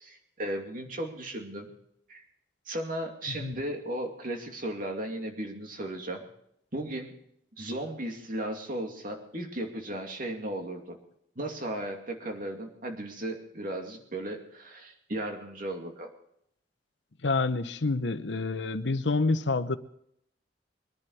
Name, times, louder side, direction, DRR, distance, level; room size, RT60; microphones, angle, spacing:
voice 1, 0.0-1.7 2.1-2.2 2.7-6.3 6.7-7.1 7.6-11.0 11.4-16.1, right 1 dB, 50° right, 3 dB, 2.5 m, -35 dB
voice 2, 17.2-19.8, left 3 dB, 90° left, 12 dB, 0.9 m, -28 dB
22.5 x 10.5 x 4.8 m, 0.72 s
head